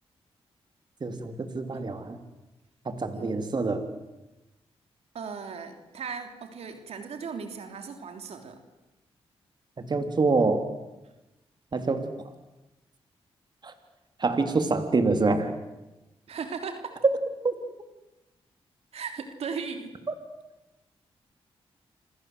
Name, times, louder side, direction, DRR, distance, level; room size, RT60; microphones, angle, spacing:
voice 1, 1.0-2.2 2.8-3.9 9.8-10.7 11.7-12.1 13.6-13.7 14.2-15.5 17.4-17.5, right 3 dB, 45° right, 7 dB, 3.3 m, -26 dB
voice 2, 5.1-8.6 16.3-17.0 18.9-19.9, right 5 dB, 75° right, 6 dB, 3.3 m, -37 dB
28.5 x 25.5 x 8.0 m, 1.0 s
cardioid pair, 65°, 11 cm